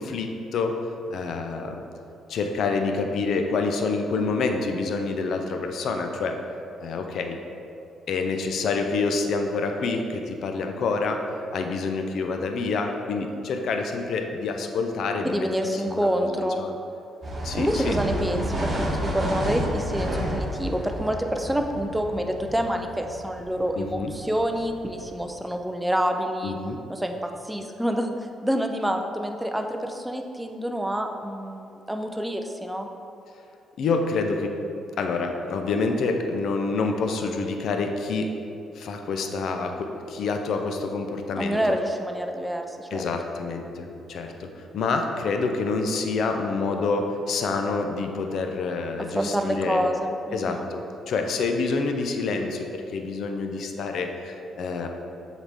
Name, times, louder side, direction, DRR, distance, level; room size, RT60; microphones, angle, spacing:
voice 1, 0.0-1.8 2.3-6.5 6.8-7.4 8.1-16.7 17.4-18.3 23.8-24.1 26.4-26.8 33.8-34.6 35.0-38.4 38.7-41.8 42.9-49.9 50.3-54.9, left 4 dB, 70° left, 4 dB, 0.5 m, -27 dB
voice 2, 15.2-16.6 17.5-26.6 26.9-28.1 28.4-32.9 41.4-43.0 49.1-50.7, equal, 5° right, 4 dB, 0.5 m, -27 dB
sound 1, 17.2-25.2, equal, 30° right, 1.3 m, -31 dB
7.0 x 4.1 x 3.6 m, 2.7 s
cardioid pair, 90°, 0 cm